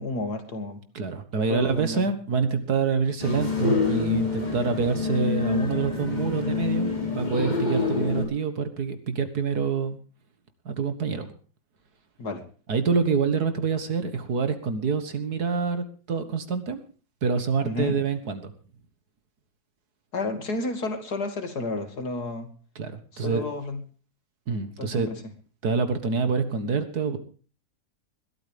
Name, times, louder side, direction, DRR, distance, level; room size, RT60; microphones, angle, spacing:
voice 1, 0.0-0.8 1.5-2.1 12.2-12.4 17.6-18.0 20.1-22.5 23.1-23.8 24.8-25.2, left 2 dB, 60° left, 7 dB, 2.8 m, -31 dB
voice 2, 0.9-10.0 10.7-11.3 12.7-16.8 17.2-18.5 22.8-23.4 24.5-25.1 25.6-27.2, right 5 dB, 60° right, 10 dB, 2.1 m, -26 dB
sound 1, 3.2-8.2, left 4 dB, 25° left, 4.4 m, -27 dB
21.5 x 13.0 x 3.5 m, 0.39 s
omnidirectional pair, 1.9 m